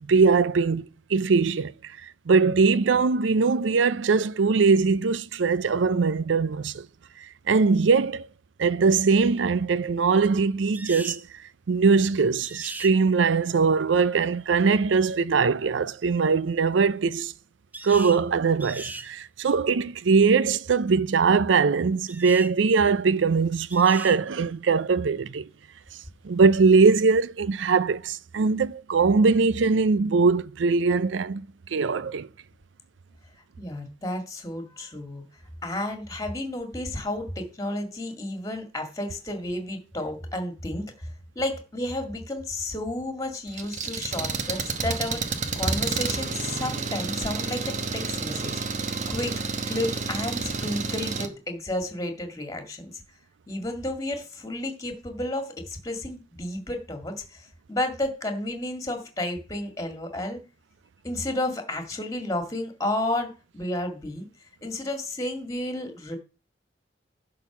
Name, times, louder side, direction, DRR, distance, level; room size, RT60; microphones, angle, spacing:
voice 1, 0.1-1.7 2.0-6.9 7.5-8.3 8.6-11.2 11.7-17.3 17.8-25.5 26.2-32.3, right 4 dB, 85° right, 0.5 m, -21 dB
sound 1, 10.7-11.2 12.5-12.9 17.7-18.2 18.6-19.1 22.1-22.5 23.7-24.2, right 2 dB, 10° right, 0.4 m, -38 dB
voice 2, 33.6-35.2 35.6-48.5 49.1-53.0 53.5-60.4 61.0-64.3 64.6-66.2, left 1 dB, 20° left, 2.0 m, -32 dB
Engine, 43.5-51.3, right 4 dB, 40° right, 1.0 m, -30 dB
11.0 x 4.0 x 7.2 m
head